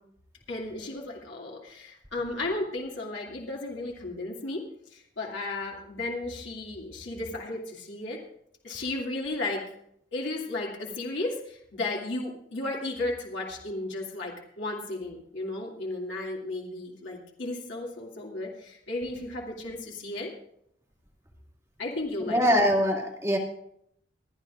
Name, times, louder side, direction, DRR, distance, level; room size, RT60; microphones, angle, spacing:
voice 1, 0.5-4.6 4.9-8.2 8.6-9.7 10.1-20.3 21.8-22.4, left 2 dB, 75° left, -2 dB, 2.4 m, -34 dB
voice 2, 22.2-23.4, equal, 15° right, -1 dB, 2.4 m, -23 dB
27.0 x 10.5 x 2.5 m, 0.72 s
head